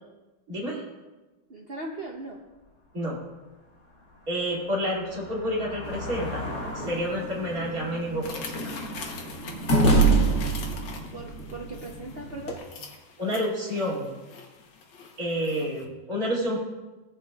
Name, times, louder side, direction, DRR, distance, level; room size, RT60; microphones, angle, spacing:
voice 1, 0.5-0.8 2.9-3.2 4.3-6.4 6.7-8.7 13.2-14.1 15.2-16.6, equal, 50° right, -5 dB, 2.9 m, -29 dB
voice 2, 1.5-2.4 11.1-12.9 15.6-15.7, right 2 dB, 80° right, 0 dB, 0.5 m, -39 dB
sound 1, 2.6-2.7 3.2-9.8, left 3 dB, 35° left, 3.7 m, -41 dB
sound 2, 5.9-12.6, right 3 dB, 55° left, 1.9 m, -27 dB
sound 3, 8.2-15.9, left 4 dB, 75° left, 1.8 m, -43 dB
16.5 x 8.0 x 2.3 m, 1.2 s
omnidirectional pair, 2.1 m